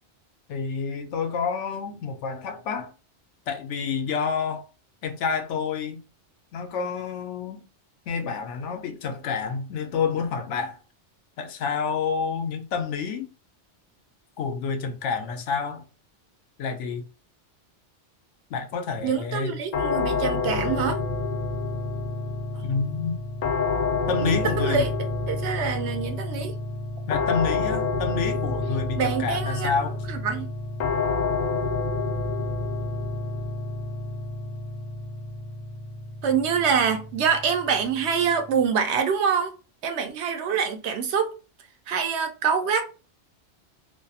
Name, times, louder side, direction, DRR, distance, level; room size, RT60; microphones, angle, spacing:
voice 1, 0.5-2.9 3.5-4.7 5.0-6.0 6.5-7.6 8.1-10.8 11.4-13.3 14.4-15.8 16.6-17.0 18.5-19.6 22.6-23.2 24.1-24.9 27.1-30.0, left 5 dB, 85° left, 0.9 m, -28 dB
voice 2, 19.0-21.0 24.2-24.9 25.3-26.6 29.0-29.7 30.1-30.5 36.2-39.5 39.8-41.3 41.9-42.9, right 6 dB, 70° right, 0.8 m, -25 dB
sound 1, 19.7-38.6, left 3 dB, 60° left, 0.4 m, -29 dB
2.6 x 2.3 x 2.7 m
omnidirectional pair, 1.2 m